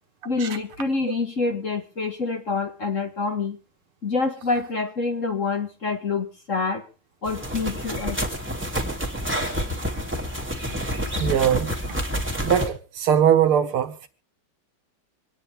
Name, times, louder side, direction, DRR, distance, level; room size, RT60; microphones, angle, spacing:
voice 1, 0.3-3.6 4.0-6.9 7.2-8.2, left 4 dB, 40° left, 1.9 m, -26 dB
sound 1, 7.2-12.7, equal, 5° right, 2.5 m, -28 dB
voice 2, 11.2-11.7 12.4-14.1, right 9 dB, 80° right, 2.3 m, -20 dB
26.5 x 9.8 x 3.6 m
omnidirectional pair, 2.4 m